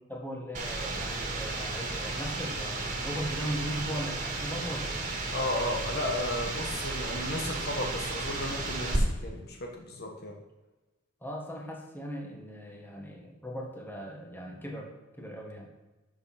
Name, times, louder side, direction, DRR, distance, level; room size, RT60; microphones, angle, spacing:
voice 1, 0.1-5.0 11.2-15.7, equal, 10° left, 0 dB, 1.6 m, -38 dB
sound 1, 0.5-9.0, right 2 dB, 40° right, 2.0 m, -34 dB
voice 2, 5.3-10.4, left 1 dB, 50° left, 2 dB, 1.4 m, -34 dB
12.0 x 6.4 x 4.3 m, 1.1 s
head